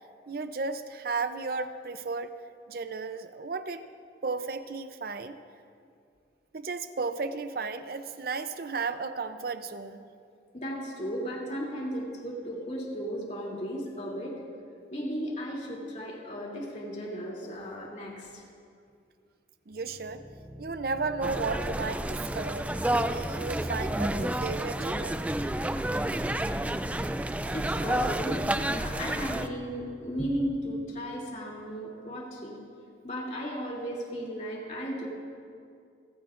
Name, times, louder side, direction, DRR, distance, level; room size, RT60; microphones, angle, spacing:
voice 1, 0.3-2.3 2.7-3.9 4.2-5.4 6.5-10.1 19.7-20.2 20.6-25.2 27.5-27.6, right 4 dB, 55° right, 10 dB, 0.6 m, -34 dB
voice 2, 10.5-14.3 14.9-18.4 27.5-28.4 28.7-32.6 33.0-35.1, equal, 40° left, -2 dB, 2.8 m, -35 dB
sound 1, 19.7-31.1, left 1 dB, 25° right, 2.3 m, -46 dB
sound 2, 21.2-29.5, right 1 dB, 10° right, 0.3 m, -30 dB
29.5 x 15.0 x 2.5 m, 2.4 s
head